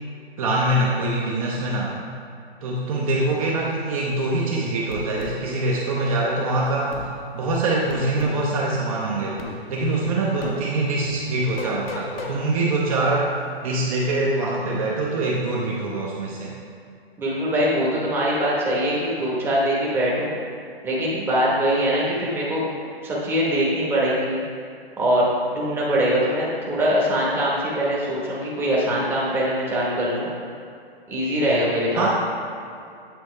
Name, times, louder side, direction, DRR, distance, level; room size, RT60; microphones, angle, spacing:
voice 1, 0.4-1.9 2.6-7.0 7.3-9.4 9.7-13.3 13.6-16.6 32.0-32.1, right 2 dB, 35° right, -4 dB, 0.8 m, -24 dB
sound 1, 4.9-5.4 6.9-7.1 7.9-8.4 9.4-9.6 10.4-10.6 11.6-12.4, left 3 dB, 65° left, 1.1 m, -33 dB
voice 2, 17.2-20.4 20.8-22.6 23.0-24.4 25.0-30.3 31.1-32.1, equal, 5° right, -6 dB, 1.0 m, -22 dB
8.7 x 4.2 x 3.2 m, 2.4 s
hypercardioid pair, 140°, 31 cm